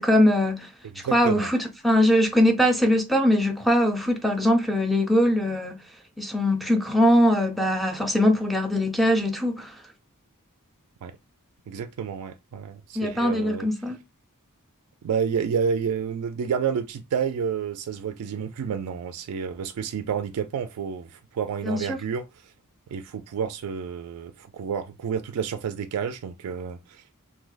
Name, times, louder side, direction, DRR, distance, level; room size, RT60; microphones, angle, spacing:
voice 1, 0.0-0.7 1.0-5.8 6.2-9.8 13.0-14.0 21.6-22.0, equal, ahead, 0.3 m, -21 dB
voice 2, 0.8-1.5 11.0-11.2 11.7-13.7 15.0-22.5 22.9-27.0, right 7 dB, 85° right, 0.3 m, -30 dB
2.7 x 2.0 x 3.8 m
head